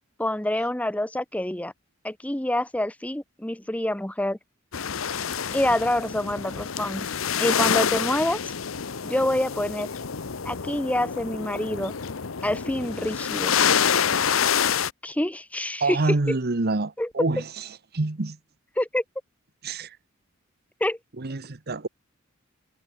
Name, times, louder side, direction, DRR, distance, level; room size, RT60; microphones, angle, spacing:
voice 1, 0.2-1.7 2.0-4.4 5.5-7.1 7.4-8.4 9.0-9.9 10.4-11.9 12.4-13.5 15.0-16.0 17.0-17.3 18.8-19.0 20.8-21.0, left 1 dB, 5° left, 0.9 m, -26 dB
sound 1, 4.7-14.9, left 7 dB, 75° left, 0.9 m, -27 dB
voice 2, 15.8-18.4 19.6-20.0 21.2-21.9, right 2 dB, 50° right, 1.1 m, -27 dB
head